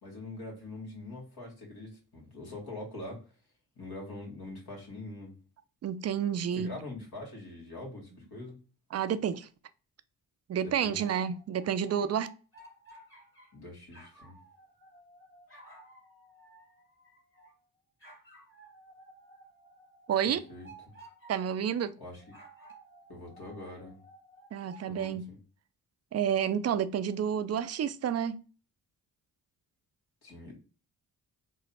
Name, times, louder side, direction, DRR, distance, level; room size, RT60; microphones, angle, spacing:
voice 1, 0.0-3.2 3.8-5.3 6.5-8.6 10.6-11.0 13.5-14.4 20.2-20.7 22.0-22.2 23.1-24.0 24.9-25.4 30.2-30.6, left 2 dB, 65° left, 1.5 m, -43 dB
voice 2, 5.8-6.7 8.9-9.5 10.5-12.3 20.1-20.4 21.3-21.9 24.5-25.3 26.1-28.4, right 8 dB, 40° right, 0.4 m, -30 dB
sound 1, 10.8-13.6 13.9-17.6 18.0-21.7 22.2-25.1, right 2 dB, 30° left, 1.8 m, -55 dB
3.1 x 2.0 x 4.1 m
supercardioid pair, 45°, 41 cm